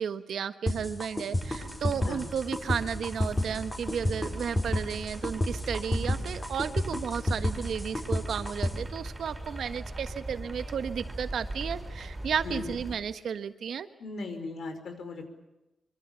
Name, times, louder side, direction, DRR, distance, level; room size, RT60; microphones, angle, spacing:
voice 1, 0.0-13.9, right 7 dB, 75° right, 11 dB, 1.4 m, -33 dB
sound 1, 0.7-8.7, left 1 dB, 15° left, 5.9 m, -29 dB
sound 2, 1.3-13.0, right 1 dB, 15° right, 5.2 m, -40 dB
voice 2, 12.4-12.8 14.0-15.3, left 3 dB, 70° left, 7 dB, 5.1 m, -38 dB
26.0 x 25.0 x 7.2 m, 0.96 s
wide cardioid pair, 145°, 0 cm